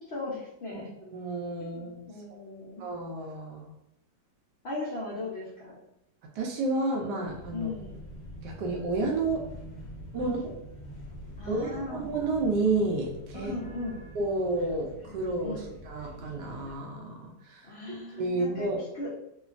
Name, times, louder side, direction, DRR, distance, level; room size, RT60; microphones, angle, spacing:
voice 1, 0.1-0.9 1.7-2.9 4.6-5.8 7.5-8.0 10.2-10.3 11.4-12.0 13.3-14.0 15.4-15.6 17.6-18.7 18.9-19.1, left 2 dB, 90° left, -6 dB, 0.5 m, -37 dB
voice 2, 1.1-2.0 2.8-3.7 6.3-7.7 8.4-9.5 10.1-10.5 11.5-13.5 14.1-18.8, right 2 dB, 75° right, 1 dB, 1.1 m, -31 dB
sound 1, 7.2-16.8, equal, 50° left, 0.9 m, -45 dB
3.2 x 2.2 x 2.4 m, 0.82 s
omnidirectional pair, 2.0 m